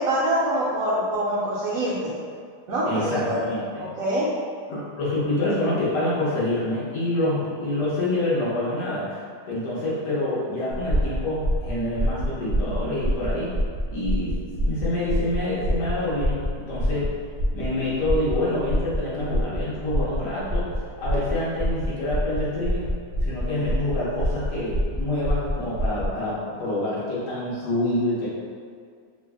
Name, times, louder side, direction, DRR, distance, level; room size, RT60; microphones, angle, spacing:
voice 1, 0.0-2.1 2.7-3.4 3.8-4.3, right 1 dB, 70° right, -7 dB, 0.9 m, -25 dB
voice 2, 2.9-4.0 4.7-9.1 9.5-13.5 13.9-17.1 17.5-20.7 21.0-28.3, left 1 dB, 85° left, -9 dB, 1.4 m, -27 dB
sound 1, 10.7-26.1, equal, 65° left, 0.8 m, -26 dB
3.2 x 2.0 x 3.4 m, 2.1 s
omnidirectional pair, 1.8 m